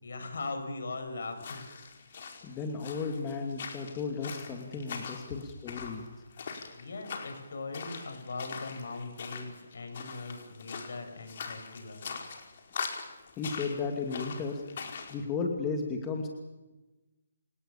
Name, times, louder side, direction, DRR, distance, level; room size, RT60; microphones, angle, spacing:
voice 1, 0.0-1.7 6.4-12.2, left 3 dB, 70° left, 6 dB, 7.5 m, -40 dB
sound 1, 1.3-15.2, left 5 dB, 45° left, 4.8 m, -42 dB
voice 2, 2.4-6.1 13.4-14.6 15.1-16.3, left 4 dB, 15° left, 3 dB, 2.5 m, -34 dB
29.5 x 19.0 x 7.2 m, 1.1 s
hypercardioid pair, 160°, 0 cm